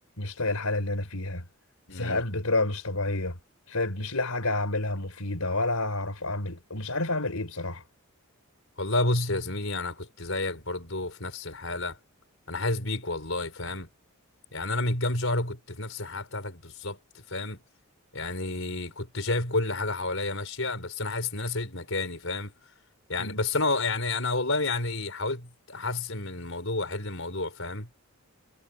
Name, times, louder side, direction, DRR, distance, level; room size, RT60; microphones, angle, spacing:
voice 1, 0.2-1.5 1.9-3.4 3.7-7.8 23.2-23.4, left 2 dB, 80° left, 4.5 m, -29 dB
voice 2, 1.9-2.2 8.8-12.0 12.5-13.9 14.5-17.0 17.3-17.6 18.1-22.5 23.1-27.9, left 2 dB, 60° left, 5.8 m, -30 dB
head